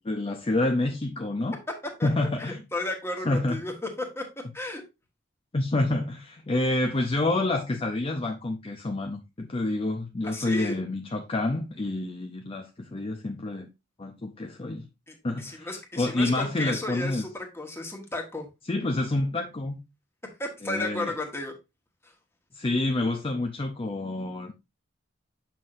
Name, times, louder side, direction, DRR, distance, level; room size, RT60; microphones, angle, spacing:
voice 1, 0.0-1.6 2.0-2.6 3.2-3.6 5.5-13.7 14.0-14.9 15.2-15.7 16.0-17.2 18.7-19.8 20.6-21.1 22.5-24.5, left 2 dB, 30° left, 0.6 m, -28 dB
voice 2, 2.4-4.3 4.5-4.8 10.2-10.8 15.1-18.5 20.4-21.5 22.0-22.1, left 2 dB, 15° left, 1.4 m, -34 dB
7.3 x 5.8 x 2.5 m
head